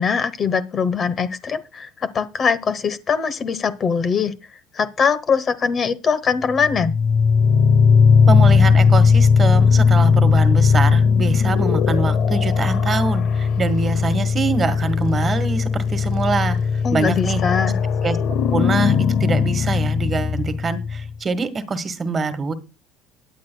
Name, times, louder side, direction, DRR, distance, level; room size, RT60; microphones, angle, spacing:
voice 1, 0.0-4.3 4.7-6.9 16.8-17.8, left 6 dB, 35° left, 14 dB, 1.0 m, -22 dB
sound 1, 6.5-21.1, left 5 dB, 55° left, 0.7 m, -17 dB
voice 2, 8.3-17.4 18.0-18.2 18.5-22.5, right 4 dB, 25° right, 13 dB, 1.5 m, -24 dB
21.5 x 9.3 x 2.3 m, 0.28 s
supercardioid pair, 115°, 0 cm